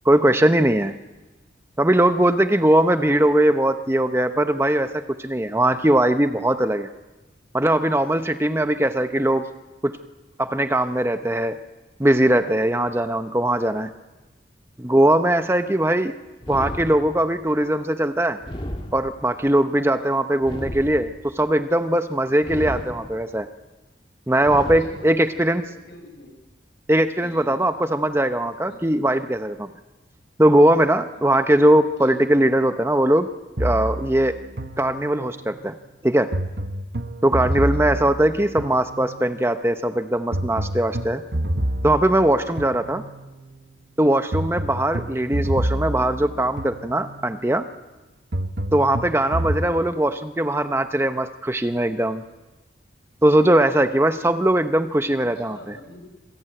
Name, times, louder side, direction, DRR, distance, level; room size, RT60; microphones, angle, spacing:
voice 1, 0.0-0.9 1.8-6.9 7.5-9.5 9.8-10.0 10.4-11.6 12.0-13.9 14.8-16.1 16.5-18.4 18.9-23.5 24.3-25.6 26.9-29.7 30.4-33.3 33.6-34.4 34.8-35.7 36.0-36.3 37.2-41.2 41.8-43.0 44.0-47.6 48.7-52.2 53.2-55.6, right 1 dB, 15° right, 8 dB, 0.8 m, -20 dB
sound 1, 16.4-17.5 18.4-19.5 20.4-21.5 22.4-23.4 24.4-25.4, equal, 30° left, 1.9 m, -34 dB
voice 2, 19.8-20.1 24.8-26.3 27.2-27.9 28.6-29.0 30.9-31.3 32.0-32.1 49.6-50.0 55.3-56.0, left 1 dB, 75° left, 4 dB, 6.7 m, -45 dB
sound 2, 33.6-35.4 36.3-39.4 40.3-43.4 44.3-47.4 48.3-49.7, right 1 dB, 60° right, 1.2 m, -28 dB
26.5 x 21.0 x 9.0 m, 1.1 s
head